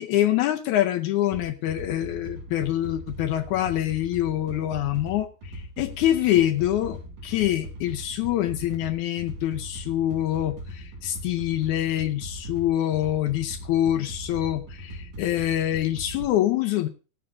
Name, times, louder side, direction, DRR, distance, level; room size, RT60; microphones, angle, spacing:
voice 1, 0.0-16.9, left 13 dB, 80° left, 6 dB, 1.8 m, -25 dB
sound 1, 1.3-16.3, equal, 60° right, 3.4 m, -40 dB
19.5 x 9.0 x 2.5 m, 0.34 s
omnidirectional pair, 4.1 m